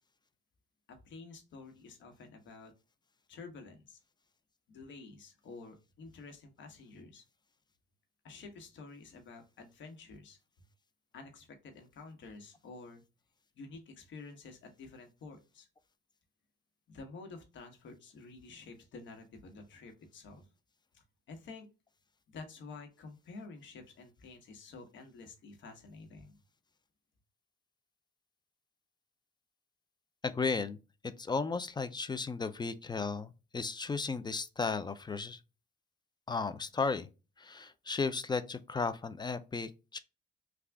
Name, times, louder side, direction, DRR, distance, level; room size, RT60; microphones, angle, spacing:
voice 1, 0.9-2.7 3.3-4.0 4.7-7.2 8.2-10.4 11.1-13.0 13.5-15.7 16.9-20.5 20.9-21.7 22.3-26.4, left 3 dB, 70° left, 1.1 m, -50 dB
voice 2, 30.2-30.8 31.2-35.4 36.3-37.1 37.4-40.0, left 4 dB, 20° left, 0.4 m, -34 dB
3.5 x 2.4 x 3.3 m
cardioid pair, 90°, 20 cm